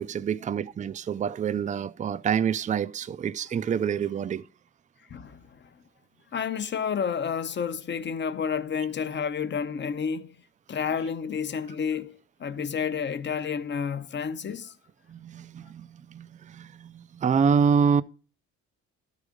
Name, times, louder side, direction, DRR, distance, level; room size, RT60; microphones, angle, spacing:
voice 1, 0.0-4.5 14.4-14.6 15.1-18.0, right 6 dB, 25° right, 0.4 m, -27 dB
voice 2, 5.1-5.7 6.3-10.3 10.7-14.8, left 6 dB, 40° left, 0.6 m, -30 dB
12.0 x 4.9 x 5.0 m
cardioid pair, 90°, 30 cm